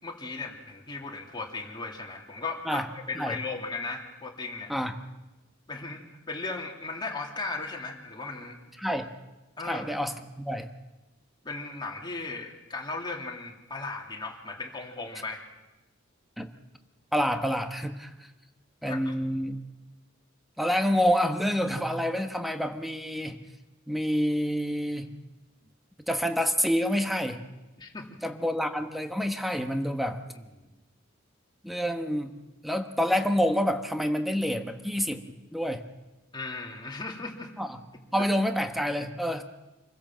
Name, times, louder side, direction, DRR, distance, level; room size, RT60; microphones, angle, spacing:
voice 1, 0.0-4.7 5.7-8.6 9.6-9.9 11.4-15.5 18.9-19.1 27.8-28.2 30.3-30.7 36.3-37.5, left 3 dB, 25° left, 0 dB, 2.9 m, -37 dB
voice 2, 8.8-9.1 9.6-10.7 16.4-16.5 17.1-18.1 18.8-19.6 20.6-23.4 23.9-25.1 26.1-27.4 28.2-30.2 31.6-35.2 35.5-35.8 37.6-37.8 38.1-39.4, equal, ahead, 7 dB, 1.3 m, -28 dB
26.5 x 16.0 x 7.5 m, 1.1 s
head